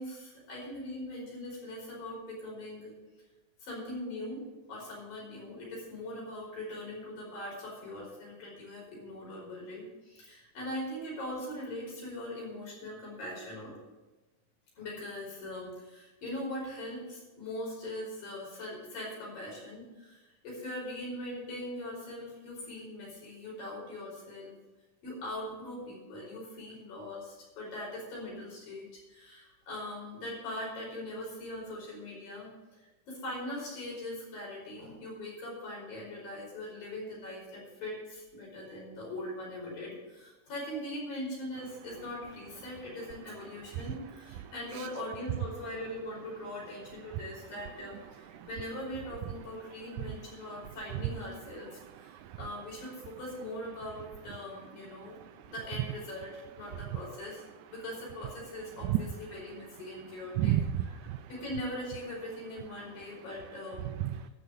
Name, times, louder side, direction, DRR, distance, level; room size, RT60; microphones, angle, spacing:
voice 1, 0.0-2.9 3.6-13.8 14.8-24.5 25.0-32.5 33.1-55.2 55.5-57.4 57.7-60.6 61.3-63.9, left 1 dB, 85° left, -4 dB, 7.0 m, -41 dB
voice 2, 52.1-52.4 58.8-59.0 60.4-61.2 63.9-64.3, right 13 dB, 80° right, 10 dB, 1.9 m, -31 dB
12.0 x 6.8 x 7.9 m, 1.1 s
omnidirectional pair, 3.9 m